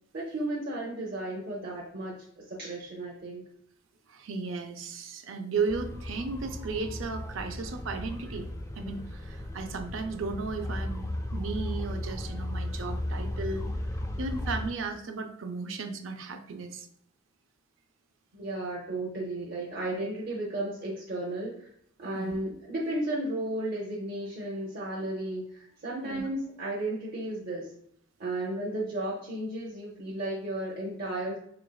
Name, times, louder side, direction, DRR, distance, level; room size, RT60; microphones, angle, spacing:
voice 1, 0.1-3.4 18.3-21.7 22.0-27.7 28.2-31.4, right 1 dB, 55° right, -4 dB, 0.7 m, -34 dB
voice 2, 4.1-8.5 8.8-13.7 14.2-16.9 22.1-22.4 26.0-26.2, right 4 dB, 85° right, 6 dB, 0.5 m, -35 dB
sound 1, 5.7-14.7, left 1 dB, 15° left, 0.4 m, -35 dB
4.3 x 3.1 x 2.3 m, 0.69 s
head